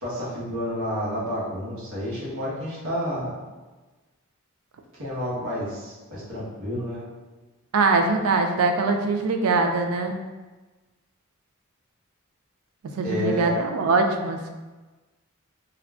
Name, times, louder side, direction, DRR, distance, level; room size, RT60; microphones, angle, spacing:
voice 1, 0.0-3.3 5.0-7.0 13.0-13.5, equal, 70° right, -8 dB, 1.0 m, -30 dB
voice 2, 7.7-10.1 13.0-14.5, right 3 dB, 85° right, 5 dB, 0.4 m, -22 dB
3.6 x 2.2 x 2.3 m, 1.2 s
head